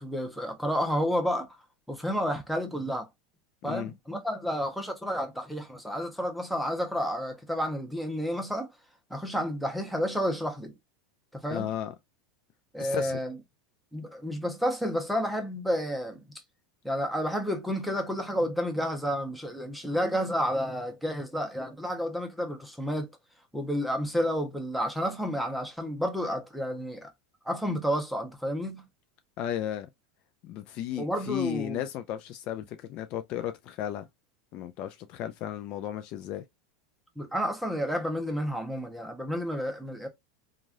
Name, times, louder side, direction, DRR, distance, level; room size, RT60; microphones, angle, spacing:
voice 1, 0.0-1.5 1.9-3.1 3.6-8.7 9.1-10.7 11.3-11.7 12.7-13.4 13.9-16.2 16.8-23.1 23.5-27.1 27.5-28.8 31.0-31.8 37.2-40.1, equal, ahead, 0.8 m, -30 dB
voice 2, 3.6-3.9 11.5-11.9 12.8-13.2 29.4-29.9 30.4-34.1 34.5-36.4, left 11 dB, 50° left, 0.4 m, -34 dB
3.1 x 2.4 x 2.5 m
supercardioid pair, 120°, 2 cm